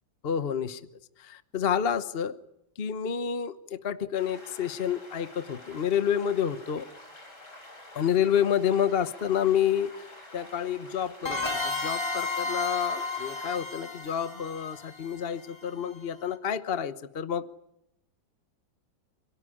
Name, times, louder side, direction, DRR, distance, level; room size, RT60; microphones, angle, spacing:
voice 1, 0.2-0.8 1.2-2.4 2.8-6.9 7.9-10.0 10.3-17.5, left 8 dB, 40° left, 12 dB, 1.0 m, -29 dB
sound 1, 4.1-13.6, left 1 dB, 55° left, 6.3 m, -48 dB
sound 2, 11.2-15.8, left 3 dB, 15° left, 3.3 m, -33 dB
28.0 x 18.0 x 10.0 m, 0.83 s
omnidirectional pair, 2.1 m